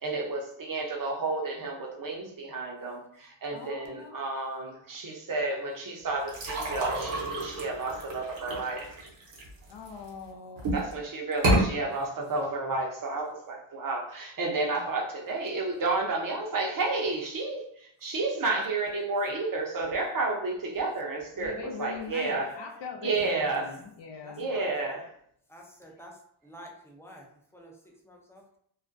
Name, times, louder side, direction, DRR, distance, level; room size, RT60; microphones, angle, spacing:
voice 1, 0.0-8.9 10.6-22.5 23.0-23.8 24.4-25.0, right 3 dB, 45° right, 0.6 m, -31 dB
voice 2, 3.5-4.2 9.7-10.8 14.7-14.9 21.3-24.5, left 6 dB, 60° left, 0.6 m, -42 dB
sound 1, 6.3-10.1 10.6-10.9 11.3-11.6, right 1 dB, 70° right, 0.9 m, -29 dB
voice 3, 22.3-22.8 23.5-23.6 24.2-25.1 25.5-28.6, equal, 5° left, 0.4 m, -50 dB
2.4 x 2.1 x 2.5 m
cardioid pair, 80°, 49 cm